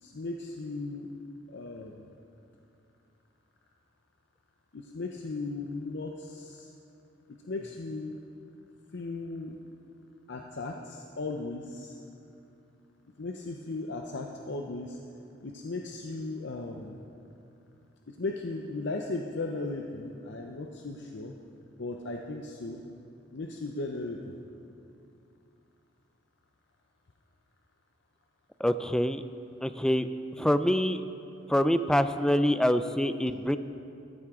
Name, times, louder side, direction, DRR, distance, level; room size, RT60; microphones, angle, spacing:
voice 1, 0.0-1.1 1.5-2.1 4.7-6.7 7.3-8.2 8.9-9.6 10.3-12.0 13.2-15.0 15.4-17.0 18.1-21.3 21.8-22.8 23.3-24.3, left 2 dB, 65° left, 2 dB, 0.7 m, -37 dB
voice 2, 28.6-29.2 29.6-30.1 30.4-31.0 31.5-33.6, equal, 5° left, 11 dB, 0.3 m, -25 dB
15.0 x 13.0 x 3.7 m, 2.6 s
head